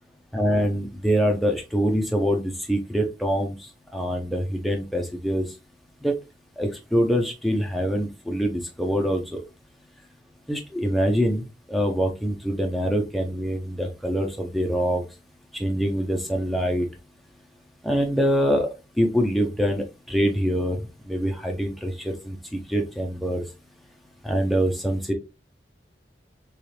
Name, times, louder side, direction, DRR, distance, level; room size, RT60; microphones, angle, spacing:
voice 1, 0.3-5.4 6.0-6.1 6.6-9.4 10.5-15.0 15.5-16.9 17.8-18.7 19.0-20.8 21.1-23.4 24.2-25.1, equal, ahead, 2 dB, 0.6 m, -24 dB
6.8 x 2.4 x 3.3 m, 0.27 s
head